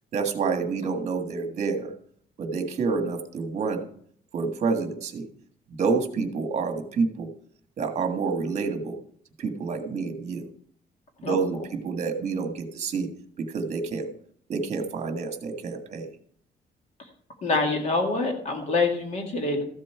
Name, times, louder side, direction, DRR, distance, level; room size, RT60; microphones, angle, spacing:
voice 1, 0.1-1.9 2.4-3.9 4.3-5.3 5.7-7.3 7.8-9.0 9.4-10.5 11.2-13.1 13.4-14.1 14.5-16.1, right 4 dB, 45° right, 5 dB, 1.7 m, -28 dB
voice 2, 17.4-19.6, left 3 dB, 45° left, 3 dB, 2.0 m, -25 dB
14.0 x 7.5 x 4.7 m, 0.63 s
cardioid pair, 170°, 17 cm